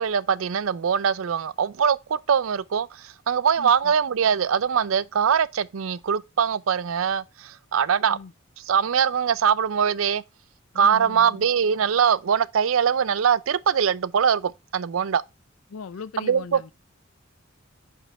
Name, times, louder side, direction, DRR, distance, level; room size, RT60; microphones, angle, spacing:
voice 1, 0.0-8.2 8.6-10.2 10.8-15.2 16.2-16.6, right 7 dB, 80° right, 0.5 m, -22 dB
voice 2, 3.6-3.9 8.1-8.3 10.7-11.5 15.7-16.7, left 5 dB, 90° left, 0.5 m, -39 dB
8.1 x 4.4 x 3.1 m
head